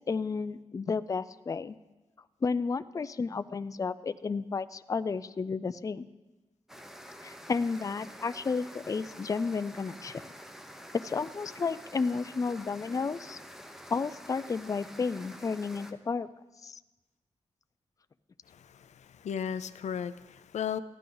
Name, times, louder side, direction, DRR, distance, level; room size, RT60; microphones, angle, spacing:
voice 1, 0.1-1.8 2.4-6.1 7.2-10.2 11.0-13.4 13.9-16.3 16.6-16.8, left 4 dB, 30° left, 13 dB, 0.4 m, -32 dB
sound 1, 6.7-15.9, equal, 5° right, 0.9 m, -48 dB
voice 2, 18.5-20.8, left 8 dB, 90° left, 14 dB, 0.5 m, -36 dB
14.5 x 12.0 x 3.9 m, 1.1 s
wide cardioid pair, 110°, 12 cm